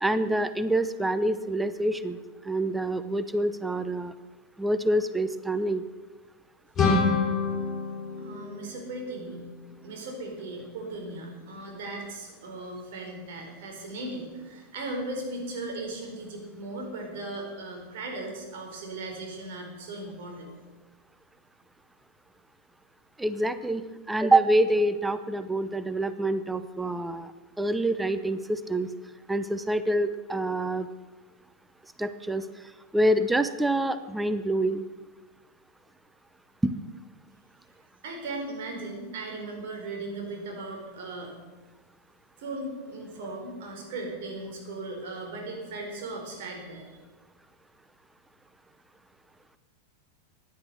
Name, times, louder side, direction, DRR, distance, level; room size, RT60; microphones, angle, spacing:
voice 1, 0.0-2.2 2.4-4.1 4.6-5.8 23.2-23.8 24.1-27.3 27.6-28.9 29.3-30.9 32.0-32.4 32.9-34.8 36.6-36.7, right 1 dB, 5° right, 12 dB, 0.7 m, -26 dB
sound 1, 6.7-9.5, left 4 dB, 20° left, 4.5 m, -27 dB
voice 2, 8.2-9.5 9.8-20.5 38.0-41.3 42.4-46.9, right 2 dB, 55° right, 1 dB, 4.4 m, -37 dB
16.0 x 10.5 x 6.4 m, 1.3 s
figure-of-eight pair, 90°, 0 cm